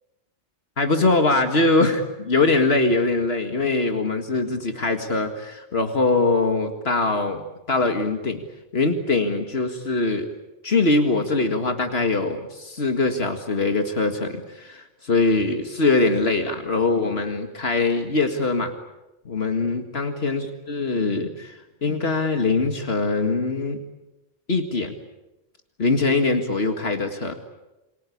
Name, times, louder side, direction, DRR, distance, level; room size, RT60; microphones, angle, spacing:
voice 1, 0.8-8.4 8.7-10.3 10.6-18.7 19.3-23.8 24.5-24.9 25.8-27.3, left 3 dB, 75° left, 5 dB, 2.2 m, -22 dB
28.0 x 24.5 x 8.5 m, 1.0 s
omnidirectional pair, 1.1 m